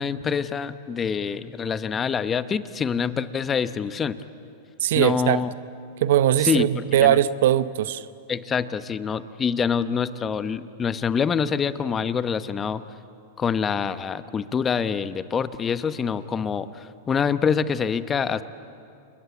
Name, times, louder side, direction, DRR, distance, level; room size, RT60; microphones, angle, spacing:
voice 1, 0.0-4.2 4.9-5.5 6.4-7.2 8.3-12.8 13.4-18.4, left 6 dB, 20° left, 13 dB, 0.9 m, -26 dB
voice 2, 4.8-5.4 6.0-8.1, right 11 dB, 70° right, 15 dB, 0.8 m, -20 dB
28.5 x 22.0 x 8.4 m, 2.5 s
hypercardioid pair, 120°, 0 cm